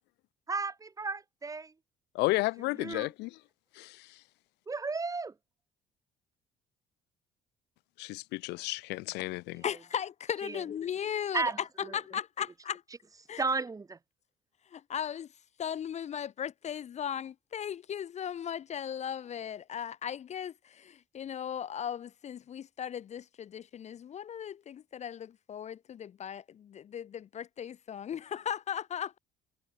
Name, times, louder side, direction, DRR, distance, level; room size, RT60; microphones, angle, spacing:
voice 1, 0.5-1.7 2.8-3.1 4.7-5.3 10.4-10.6 11.3-12.0 13.4-14.0, right 4 dB, 20° right, 1.4 m, -34 dB
voice 2, 2.1-3.4 3.8-4.2 8.0-9.6, left 22 dB, 90° left, 0.7 m, -32 dB
voice 3, 9.6-12.8 13.3-13.4 14.7-15.3 15.6-29.2, left 9 dB, 40° left, 0.7 m, -37 dB
cardioid pair, 110°, 17 cm